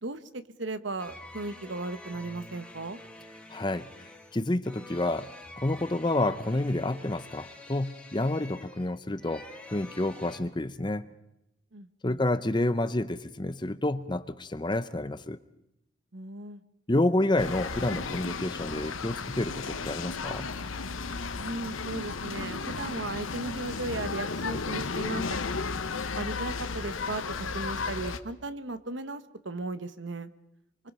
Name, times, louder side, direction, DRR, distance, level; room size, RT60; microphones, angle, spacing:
voice 1, 0.0-3.0 11.7-12.2 16.1-16.6 21.4-25.2 26.1-27.2 27.5-30.3, right 2 dB, 65° right, 12 dB, 1.2 m, -36 dB
sound 1, 1.0-10.4, left 1 dB, 5° left, 2.2 m, -47 dB
voice 2, 3.5-3.9 4.3-5.3 5.6-9.4 9.7-11.1 12.0-15.4 16.9-20.5, left 1 dB, 25° left, 13 dB, 0.7 m, -29 dB
sound 2, 17.4-28.2, left 4 dB, 90° left, 1.1 m, -34 dB
25.0 x 24.5 x 5.5 m, 0.83 s
head